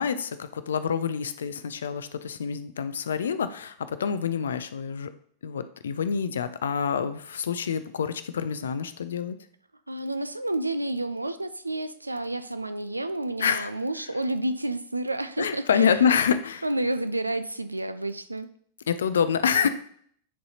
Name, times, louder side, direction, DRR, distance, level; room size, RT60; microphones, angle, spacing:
voice 1, 0.0-5.1 5.4-9.4 13.4-13.7 15.4-16.6 18.9-19.7, left 7 dB, 65° left, 12 dB, 0.4 m, -27 dB
voice 2, 9.9-16.1 16.6-18.5, right 2 dB, 85° right, 12 dB, 0.4 m, -30 dB
9.9 x 4.0 x 2.8 m, 0.63 s
figure-of-eight pair, 90°, 0 cm